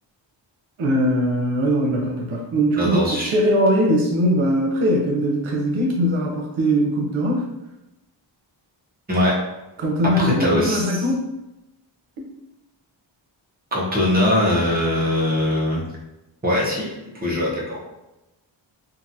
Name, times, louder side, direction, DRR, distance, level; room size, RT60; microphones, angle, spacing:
voice 1, 0.8-7.4 9.8-11.2 12.2-12.3, equal, 85° right, -1 dB, 0.8 m, -21 dB
voice 2, 2.8-3.3 9.1-9.3 10.2-11.0 13.7-15.8 16.4-17.0 17.2-17.8, left 1 dB, 20° right, -5 dB, 0.8 m, -21 dB
2.9 x 2.5 x 2.6 m, 0.95 s
wide cardioid pair, 130°, 47 cm